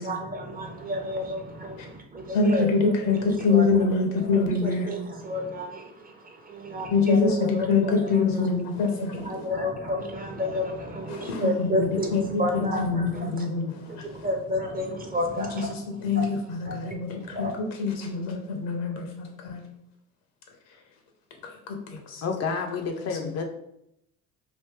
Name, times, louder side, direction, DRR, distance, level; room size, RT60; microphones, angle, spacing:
voice 1, 0.0-2.7 3.1-3.7 4.3-8.5 9.2-13.5 13.9-16.3 16.6-17.0 17.3-17.5, equal, 25° right, 3 dB, 0.7 m, -31 dB
voice 2, 2.3-4.9 6.9-9.5 11.1-14.3 15.4-19.6 21.4-22.2 23.2-23.4, left 4 dB, 75° left, 3 dB, 0.9 m, -25 dB
voice 3, 22.2-23.5, left 5 dB, 45° left, 3 dB, 0.6 m, -29 dB
3.1 x 2.6 x 3.4 m, 0.78 s
supercardioid pair, 75°, 35 cm